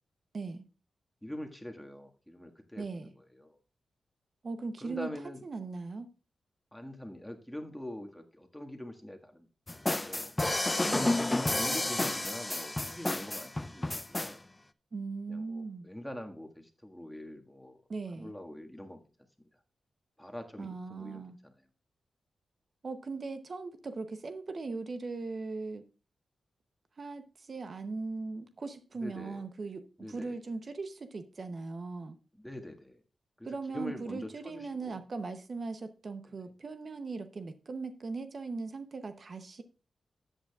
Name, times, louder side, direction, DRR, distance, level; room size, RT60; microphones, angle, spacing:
voice 1, 0.3-0.7 2.8-3.1 4.4-5.1 5.4-6.1 10.8-11.3 14.9-15.9 17.9-18.3 20.6-21.4 22.8-25.8 27.0-29.8 30.1-32.2 33.4-39.6, right 3 dB, 55° right, 0.8 m, -39 dB
voice 2, 1.2-3.6 4.8-5.4 6.7-10.8 11.5-14.4 15.3-17.8 18.2-19.0 20.2-21.5 28.9-29.4 30.0-30.4 32.3-33.0 33.4-35.0 36.3-36.4, left 1 dB, 5° left, 1.7 m, -44 dB
sound 1, 9.7-14.3, left 2 dB, 20° left, 0.5 m, -30 dB
13.0 x 8.2 x 2.4 m
cardioid pair, 45°, 0 cm